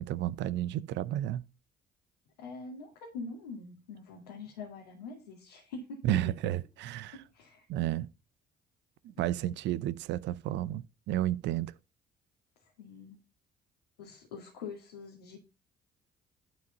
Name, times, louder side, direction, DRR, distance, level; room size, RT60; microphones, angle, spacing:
voice 1, 0.0-1.4 6.0-7.2 7.7-8.1 9.0-11.7, right 13 dB, 65° right, 0.6 m, -32 dB
voice 2, 2.4-6.0 7.1-7.6 9.2-9.9 12.8-13.2 14.0-15.4, left 4 dB, 90° left, 2.2 m, -45 dB
11.5 x 4.9 x 5.3 m
hypercardioid pair, 50°, 20 cm